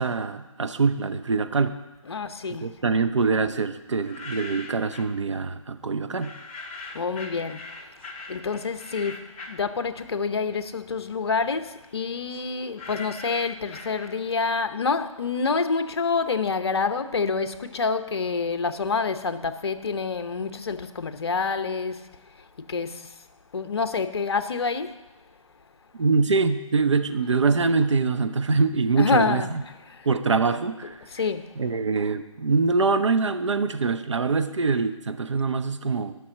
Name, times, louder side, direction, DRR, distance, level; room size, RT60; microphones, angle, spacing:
voice 1, 0.0-1.8 2.6-6.3 26.0-29.6 30.0-31.0 31.6-36.1, right 4 dB, 60° right, 0.7 m, -24 dB
voice 2, 2.1-2.7 6.9-7.6 8.3-22.0 22.6-23.1 23.5-25.0 29.0-29.5 29.9-30.1 31.1-31.5, left 4 dB, 50° left, 0.8 m, -27 dB
sound 1, 3.9-5.2 6.2-10.4 10.8-14.5, left 3 dB, 25° left, 1.0 m, -42 dB
11.0 x 6.1 x 7.3 m
figure-of-eight pair, 150°, 17 cm